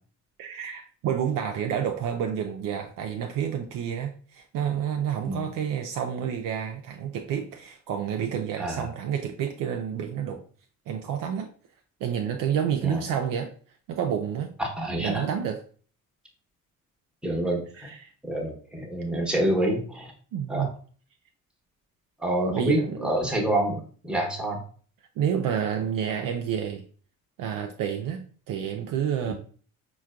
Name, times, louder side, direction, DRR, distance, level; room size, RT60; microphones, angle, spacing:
voice 1, 0.4-10.4 10.9-11.5 12.0-13.5 13.9-14.5 15.0-15.6 17.8-18.1 20.3-20.7 22.5-23.1 25.2-26.8 27.4-28.2 28.5-29.3, right 8 dB, 50° right, 0.5 m, -29 dB
voice 2, 14.6-15.2 17.2-17.9 18.3-20.1 20.5-20.7 22.2-24.6 29.3-29.4, right 1 dB, ahead, 0.9 m, -27 dB
4.3 x 2.3 x 2.3 m
hypercardioid pair, 50°, 42 cm